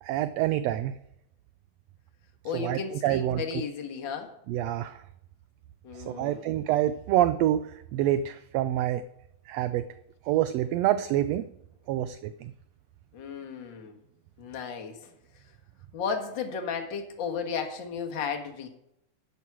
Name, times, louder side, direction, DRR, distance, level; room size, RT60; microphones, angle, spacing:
voice 1, 0.0-0.9 2.5-3.6 4.5-5.0 5.9-9.0 9.5-9.8 10.3-11.4 11.9-12.5, right 12 dB, 80° right, 12 dB, 1.5 m, -27 dB
voice 2, 2.4-4.3 5.8-6.4 13.1-14.0 14.4-15.1 15.9-18.7, left 6 dB, 50° left, 3 dB, 1.8 m, -34 dB
12.0 x 8.4 x 4.7 m, 0.78 s
omnidirectional pair, 3.3 m